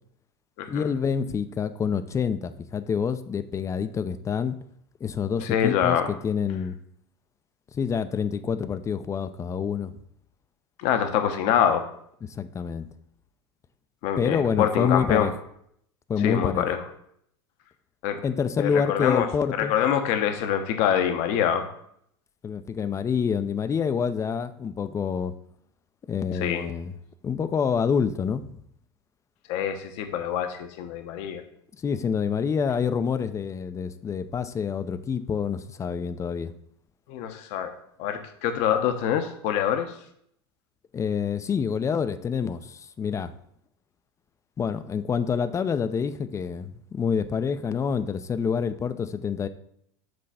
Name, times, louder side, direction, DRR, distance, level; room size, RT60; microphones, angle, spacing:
voice 1, 0.7-4.6 5.0-6.8 7.7-9.9 12.3-12.9 14.2-15.3 16.1-16.6 18.2-19.7 22.4-25.3 26.1-27.0 27.2-28.5 31.8-36.5 40.9-43.3 44.6-49.5, left 6 dB, 20° left, 12 dB, 0.5 m, -27 dB
voice 2, 5.4-6.1 10.8-11.8 14.0-15.3 16.2-16.8 18.0-18.2 18.6-19.3 19.6-21.7 26.3-26.6 29.5-31.4 37.1-37.7 38.0-39.9, left 9 dB, 55° left, 7 dB, 0.9 m, -25 dB
7.8 x 3.2 x 5.5 m, 0.70 s
hypercardioid pair, 95°, 14 cm